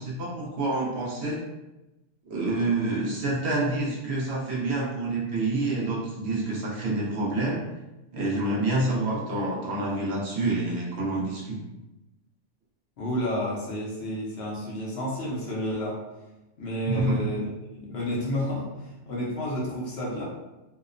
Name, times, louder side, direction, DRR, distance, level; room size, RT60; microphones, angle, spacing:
voice 1, 0.0-1.4 2.3-7.6 8.1-11.6 16.9-17.2, right 2 dB, 65° right, -4 dB, 0.9 m, -27 dB
voice 2, 13.0-16.0 16.6-17.5 17.7-20.2, equal, 60° left, -4 dB, 0.8 m, -30 dB
2.8 x 2.0 x 2.4 m, 1.0 s
omnidirectional pair, 1.3 m